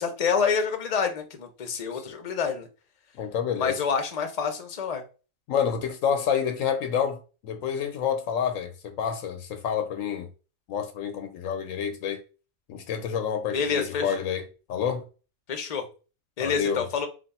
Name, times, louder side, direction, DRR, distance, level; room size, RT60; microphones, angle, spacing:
voice 1, 0.0-2.7 3.6-5.0 13.5-14.1 15.5-15.8 16.4-17.1, left 6 dB, 40° left, 0.6 m, -27 dB
voice 2, 3.2-3.8 5.5-10.3 10.7-12.2 12.7-15.0 16.4-16.8, left 7 dB, 80° left, 1.0 m, -28 dB
3.4 x 2.6 x 4.1 m
omnidirectional pair, 1.3 m